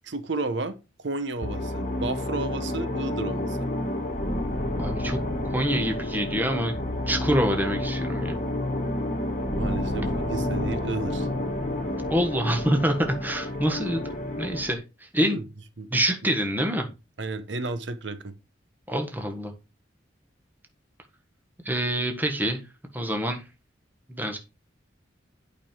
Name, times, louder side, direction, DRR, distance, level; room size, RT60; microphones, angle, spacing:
voice 1, 0.0-3.7 9.5-11.3 15.2-15.4 15.8-15.9 17.2-18.3, right 3 dB, 75° right, 0.9 m, -32 dB
sound 1, 1.4-14.7, left 1 dB, 40° left, 1.5 m, -29 dB
voice 2, 4.8-5.2 5.5-6.7 7.1-8.4 12.1-14.0 14.4-15.4 15.9-16.9 18.9-19.5 21.6-22.6 22.9-23.4 24.1-24.4, equal, 10° right, 1.4 m, -26 dB
8.7 x 5.4 x 4.4 m
head